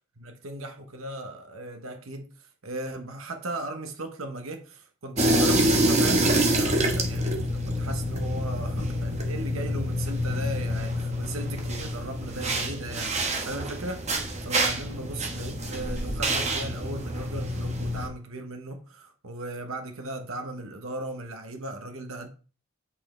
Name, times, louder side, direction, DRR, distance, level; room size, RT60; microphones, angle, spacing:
voice 1, 0.2-22.3, right 2 dB, 85° right, 1.1 m, -37 dB
sound 1, 5.2-18.1, right 1 dB, 35° right, 1.2 m, -27 dB
8.5 x 5.3 x 4.3 m
head